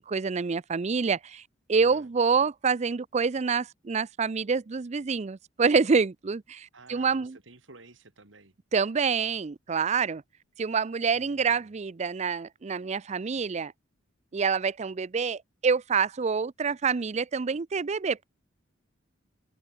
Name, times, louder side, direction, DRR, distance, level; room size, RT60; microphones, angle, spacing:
voice 1, 0.0-1.4 1.7-7.4 8.7-10.2 10.6-13.7 14.3-18.2, right 5 dB, 35° right, 0.4 m, -27 dB
voice 2, 1.7-2.1 6.7-8.5 11.1-11.7, right 3 dB, 70° right, 2.8 m, -52 dB
head